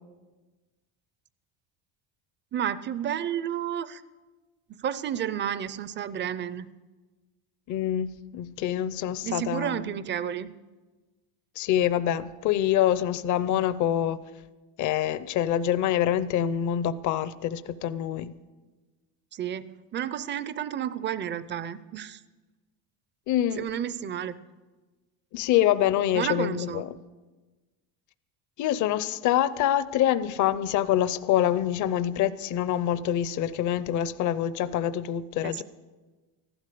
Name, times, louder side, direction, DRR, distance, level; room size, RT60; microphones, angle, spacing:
voice 1, 2.5-4.0 4.8-6.7 9.2-10.5 19.3-22.2 23.6-24.4 26.1-26.9 35.4-35.6, right 10 dB, 25° right, 16 dB, 0.5 m, -31 dB
voice 2, 7.7-10.0 11.6-14.2 14.8-18.3 23.3-23.7 25.3-27.0 28.6-35.6, left 11 dB, 45° left, 14 dB, 0.6 m, -26 dB
14.5 x 12.0 x 6.7 m, 1.2 s
cardioid pair, 150°, 42 cm